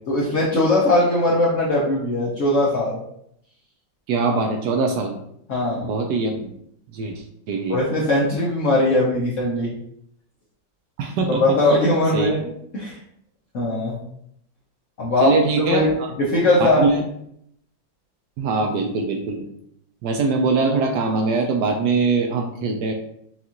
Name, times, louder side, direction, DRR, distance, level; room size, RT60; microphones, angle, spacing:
voice 1, 0.1-3.0 5.5-5.9 7.7-9.7 11.3-13.0 13.5-14.0 15.0-15.9 16.2-16.8, left 1 dB, 55° left, -5 dB, 0.9 m, -20 dB
voice 2, 4.1-5.2 5.8-6.5 6.9-7.8 11.0-11.4 12.1-12.3 15.2-15.9 16.6-17.0 18.4-19.4 20.0-22.9, right 4 dB, 75° right, 3 dB, 1.1 m, -22 dB
6.0 x 2.5 x 2.8 m, 0.71 s
omnidirectional pair, 2.0 m